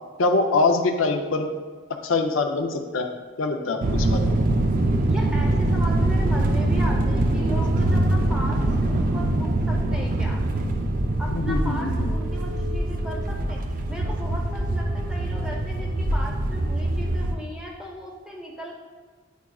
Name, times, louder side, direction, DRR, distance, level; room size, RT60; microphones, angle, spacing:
voice 1, 0.2-1.5 2.0-3.1 3.4-4.3 11.3-12.1, left 3 dB, 90° left, 5 dB, 0.6 m, -24 dB
sound 1, 3.8-17.4, right 1 dB, 45° right, 0.4 m, -23 dB
voice 2, 5.0-10.4 11.2-13.6 13.9-18.7, equal, 5° right, -2 dB, 0.8 m, -36 dB
9.2 x 4.8 x 2.3 m, 1.4 s
head